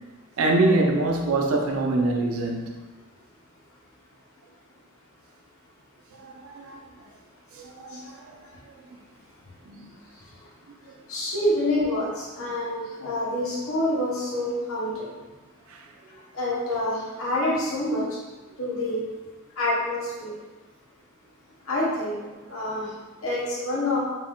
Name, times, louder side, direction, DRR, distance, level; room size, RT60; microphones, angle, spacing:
voice 1, 0.4-2.8 6.2-6.8 7.5-8.3 9.7-9.9 15.7-15.8, right 2 dB, 85° right, 1 dB, 0.6 m, -24 dB
voice 2, 11.1-15.1 16.3-18.0 18.6-19.0 19.6-20.3 21.7-22.2 22.5-22.9 23.2-24.0, left 1 dB, 80° left, -6 dB, 1.2 m, -27 dB
4.1 x 2.2 x 3.8 m, 1.2 s
head